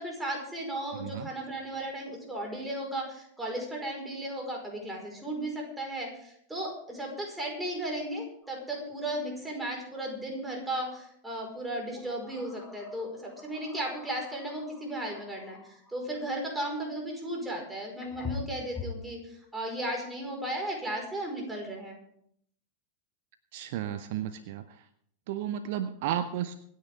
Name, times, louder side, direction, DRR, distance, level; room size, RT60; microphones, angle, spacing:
voice 1, 0.0-22.0, right 1 dB, 5° right, 0 dB, 5.1 m, -35 dB
voice 2, 1.0-1.3 23.5-24.8 25.3-26.5, right 10 dB, 50° right, 12 dB, 0.8 m, -33 dB
sound 1, 8.4-8.5 8.9-9.1 10.9-11.1 11.9-16.2 17.4-17.5 18.0-19.1, left 5 dB, 15° left, 2.7 m, -44 dB
26.0 x 9.7 x 3.7 m, 0.69 s
figure-of-eight pair, 90°, 0 cm